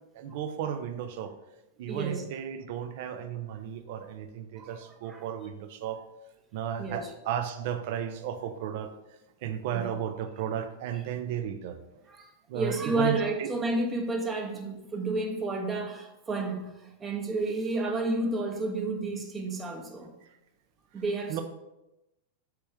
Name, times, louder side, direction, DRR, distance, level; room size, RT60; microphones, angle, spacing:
voice 1, 0.1-1.3 1.8-6.0 6.5-8.9 9.4-11.8 12.5-13.5 21.3-21.4, right 9 dB, 60° right, 8 dB, 0.5 m, -34 dB
voice 2, 1.8-2.2 4.6-5.3 6.8-7.1 9.7-9.9 10.9-11.0 12.1-20.1 20.9-21.4, right 2 dB, 20° right, 2 dB, 0.7 m, -31 dB
3.4 x 3.0 x 4.8 m, 0.95 s
hypercardioid pair, 125°, 0 cm